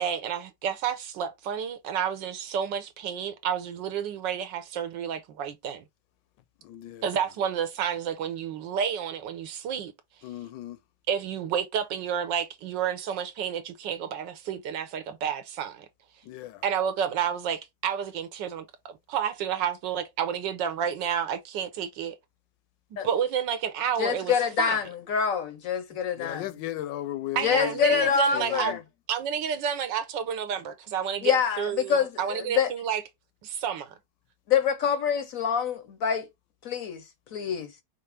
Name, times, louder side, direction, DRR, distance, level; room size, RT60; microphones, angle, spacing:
voice 1, 0.0-5.8 7.0-9.9 11.1-15.9 16.6-22.1 23.0-24.8 27.3-28.7 29.1-33.0 33.4-33.9, right 8 dB, 90° right, 1.5 m, -30 dB
voice 2, 6.6-7.0 10.2-10.8 16.3-16.6 26.2-28.8, left 13 dB, 85° left, 1.3 m, -36 dB
voice 3, 24.0-26.5 27.4-28.8 31.2-32.7 34.5-36.3 36.6-37.0 37.3-37.7, left 7 dB, 65° left, 0.8 m, -26 dB
5.5 x 2.0 x 4.8 m
omnidirectional pair, 1.9 m